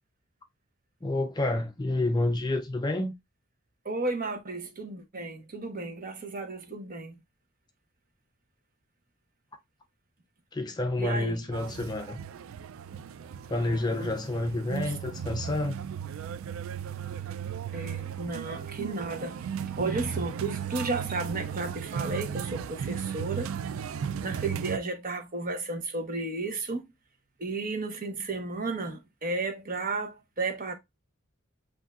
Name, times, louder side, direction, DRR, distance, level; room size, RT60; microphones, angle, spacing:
voice 1, 1.0-3.1 10.5-12.2 13.5-15.8, left 2 dB, 20° left, 0.4 m, -29 dB
voice 2, 3.8-7.2 11.0-11.4 13.5-14.1 14.7-15.0 17.7-23.5 24.2-26.8 27.4-30.7, right 3 dB, 40° right, 1.1 m, -33 dB
sound 1, 11.5-24.8, right 8 dB, 70° right, 0.3 m, -36 dB
7.9 x 2.7 x 2.4 m
head